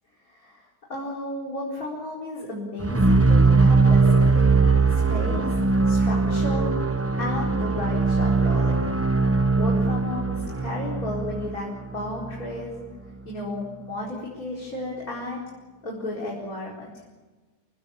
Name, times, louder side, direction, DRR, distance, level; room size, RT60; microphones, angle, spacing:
voice 1, 0.2-5.6 5.8-6.7 7.2-8.8 9.5-12.8 13.2-15.4 15.8-17.0, left 1 dB, 60° left, -4 dB, 5.0 m, -33 dB
sound 1, 2.8-12.8, right 3 dB, 10° right, 0.9 m, -21 dB
28.5 x 21.5 x 7.2 m, 1.3 s
omnidirectional pair, 1.7 m